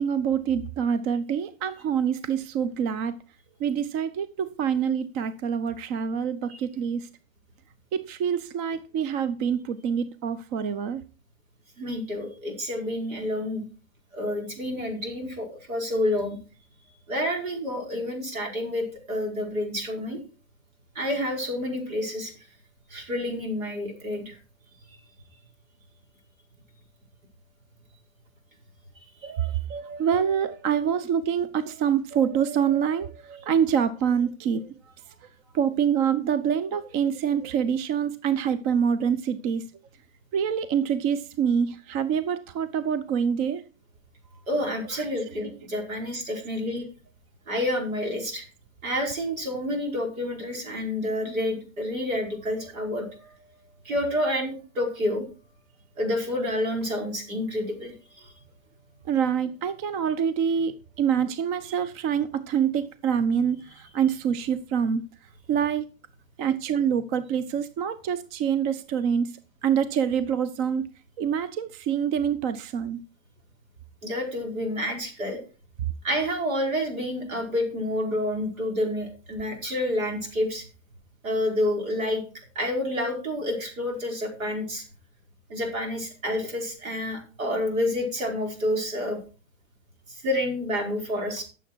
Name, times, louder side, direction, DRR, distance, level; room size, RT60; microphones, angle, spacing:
voice 1, 0.0-3.1 3.6-7.1 7.9-11.0 29.2-34.7 35.5-39.6 40.3-43.6 44.9-45.0 45.3-45.4 59.1-65.0 65.5-65.8 66.4-69.4 69.6-70.9 71.2-73.0, right 8 dB, 40° right, 0.9 m, -26 dB
voice 2, 11.8-13.6 14.1-16.4 17.1-20.2 20.9-22.3 22.9-24.4 29.2-29.3 44.5-46.9 47.5-48.4 48.8-53.3 53.8-55.3 56.0-58.3 74.0-75.4 76.0-80.6 81.2-82.2 82.5-84.8 85.5-89.2 90.1-91.4, left 1 dB, 85° right, 4.9 m, -29 dB
13.5 x 7.2 x 4.6 m
hypercardioid pair, 125°, 40 cm